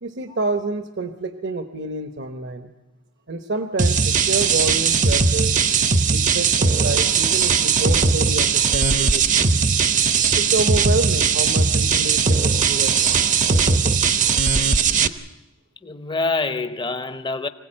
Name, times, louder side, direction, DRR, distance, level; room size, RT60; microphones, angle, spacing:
voice 1, 0.0-2.7 3.3-5.5 6.1-9.6 10.3-13.3, right 3 dB, 60° right, 1.1 m, -28 dB
sound 1, 3.8-15.1, right 5 dB, 40° right, 0.8 m, -19 dB
voice 2, 14.7-15.1 15.8-17.5, left 3 dB, 25° left, 0.8 m, -27 dB
25.0 x 16.5 x 8.9 m
head